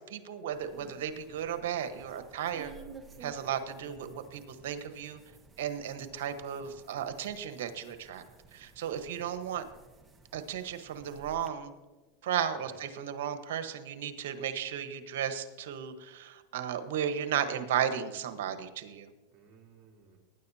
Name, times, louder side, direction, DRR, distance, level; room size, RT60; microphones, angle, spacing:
voice 1, 0.1-2.7 3.2-5.2 5.6-8.2 8.5-9.6 10.3-11.7 12.2-19.1, right 9 dB, 75° right, 9 dB, 1.2 m, -34 dB
sound 1, 0.5-11.5, right 5 dB, 15° right, 1.2 m, -54 dB
voice 2, 3.3-4.4 12.5-12.8 19.3-20.2, right 5 dB, 40° right, 0 dB, 3.3 m, -55 dB
19.0 x 10.0 x 2.8 m, 1.2 s
supercardioid pair, 115°, 0 cm